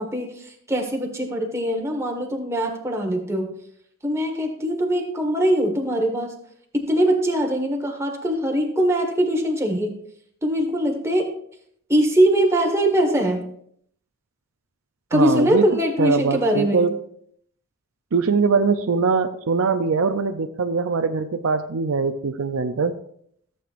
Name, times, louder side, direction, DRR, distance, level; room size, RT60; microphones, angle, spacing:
voice 1, 0.0-3.5 4.0-6.3 6.7-9.9 10.4-11.3 11.9-13.4 15.1-16.9, right 1 dB, 15° right, 2 dB, 1.4 m, -22 dB
voice 2, 15.1-17.0 18.1-23.0, right 4 dB, 70° right, 8 dB, 0.5 m, -22 dB
14.5 x 7.8 x 2.5 m, 0.67 s
head